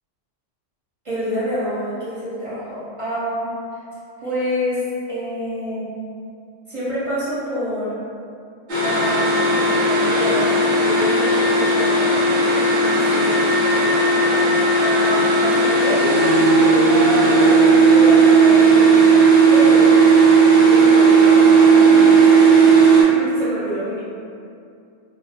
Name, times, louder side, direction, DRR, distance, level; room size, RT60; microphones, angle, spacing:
voice 1, 1.0-3.5 4.2-4.8 5.1-5.9 6.7-7.9 8.8-12.2 12.5-13.5 14.8-20.0 20.5-22.4 23.1-24.0, equal, 30° right, -12 dB, 0.9 m, -27 dB
sound 1, 8.7-23.0, right 4 dB, 55° right, 0.6 m, -14 dB
2.4 x 2.1 x 2.7 m, 2.4 s
omnidirectional pair, 1.3 m